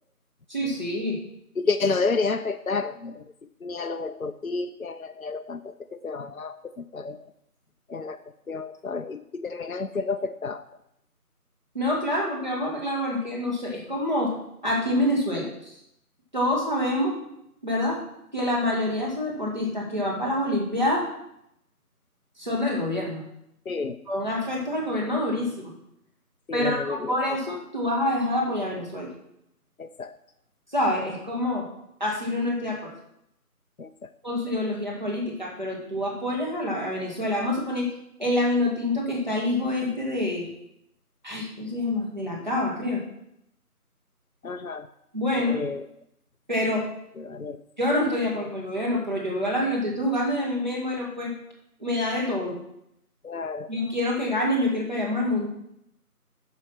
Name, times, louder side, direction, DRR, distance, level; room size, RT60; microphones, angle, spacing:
voice 1, 0.5-1.2 11.7-14.3 14.6-15.7 16.3-17.2 17.6-18.0 18.3-21.1 22.4-23.2 24.1-25.7 26.5-29.1 30.7-31.7 32.0-32.9 34.2-37.9 38.2-40.5 41.2-43.0 45.1-45.6 46.5-46.9 47.8-51.3 51.8-52.6 53.7-55.5, left 1 dB, 30° right, -4 dB, 2.1 m, -26 dB
voice 2, 1.6-3.3 3.6-7.2 7.9-8.2 8.5-10.7 23.7-24.0 26.5-27.1 29.8-30.1 33.8-34.1 44.4-44.9 45.4-45.9 47.2-47.6 53.2-53.7, left 4 dB, 65° left, 7 dB, 0.6 m, -30 dB
9.8 x 5.7 x 5.8 m, 0.79 s
figure-of-eight pair, 175°, 46 cm